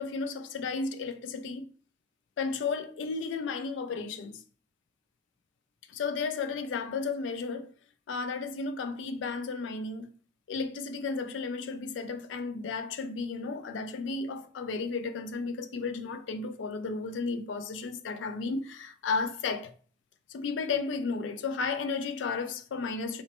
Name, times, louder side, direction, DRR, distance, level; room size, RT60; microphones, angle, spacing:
voice 1, 0.0-1.7 2.4-4.4 5.9-7.7 8.1-10.1 10.5-19.7 20.3-23.2, left 4 dB, 90° left, 0.3 m, -33 dB
3.0 x 2.1 x 2.9 m
head